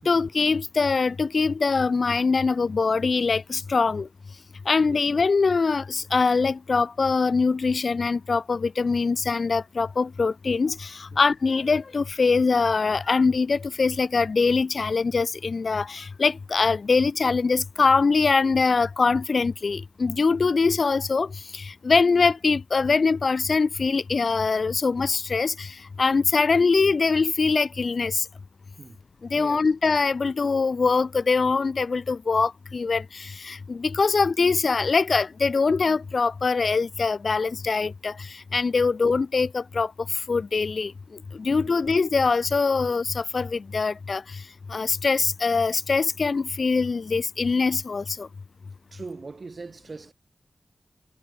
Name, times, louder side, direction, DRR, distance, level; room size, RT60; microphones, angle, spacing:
voice 1, 0.1-4.1 4.7-28.3 29.3-40.9 41.3-44.4 44.7-48.3, left 4 dB, 60° left, 0.4 m, -23 dB
voice 2, 48.9-50.1, right 3 dB, 50° right, 6.2 m, -41 dB
wide cardioid pair, 95°, 0 cm